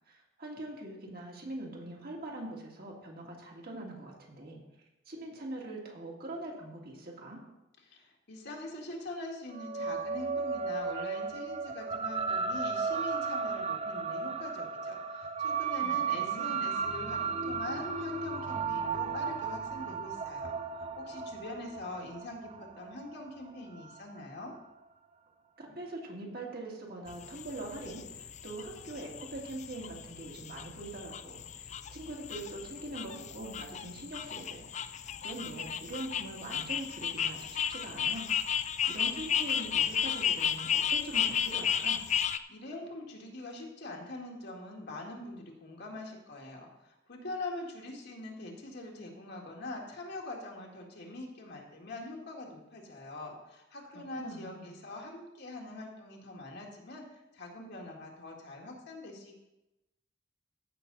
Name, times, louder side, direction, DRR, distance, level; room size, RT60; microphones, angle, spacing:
voice 1, 0.1-4.6 5.1-7.4 15.8-16.6 25.6-38.6 38.9-42.0 53.9-54.8, right 2 dB, 50° right, -1 dB, 2.2 m, -43 dB
voice 2, 7.8-24.5 42.5-59.4, left 2 dB, 60° left, 0 dB, 1.8 m, -43 dB
sound 1, 9.5-24.2, right 5 dB, 35° right, 0.5 m, -35 dB
sound 2, 27.1-42.4, left 8 dB, 35° left, 0.4 m, -34 dB
15.0 x 6.0 x 4.0 m, 0.96 s
head